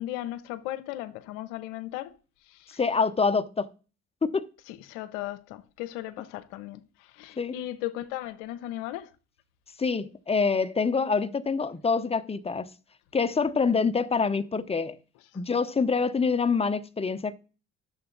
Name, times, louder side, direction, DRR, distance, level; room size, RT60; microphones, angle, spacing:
voice 1, 0.0-2.1 2.5-2.8 4.7-6.8 7.1-9.1, left 14 dB, 85° left, 0.7 m, -36 dB
voice 2, 2.8-3.7 4.2-4.5 7.4-7.6 9.8-12.7 13.1-15.0 15.3-17.3, left 5 dB, 20° left, 0.9 m, -26 dB
10.5 x 7.0 x 3.9 m
hypercardioid pair, 60°, 32 cm